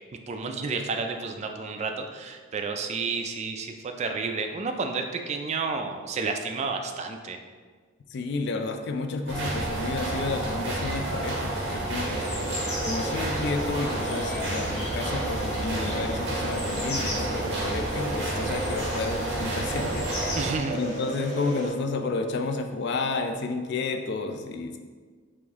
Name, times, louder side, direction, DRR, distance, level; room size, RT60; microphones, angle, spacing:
voice 1, 0.3-7.4 20.4-20.8, right 4 dB, 35° right, 5 dB, 0.3 m, -31 dB
voice 2, 8.1-12.3 12.8-20.4 20.7-24.8, left 3 dB, 60° left, 5 dB, 0.4 m, -31 dB
sound 1, 9.3-20.6, right 2 dB, 60° right, 1.0 m, -30 dB
sound 2, 11.9-21.7, right 1 dB, 35° left, 1.4 m, -34 dB
4.9 x 2.6 x 3.5 m, 1.5 s
head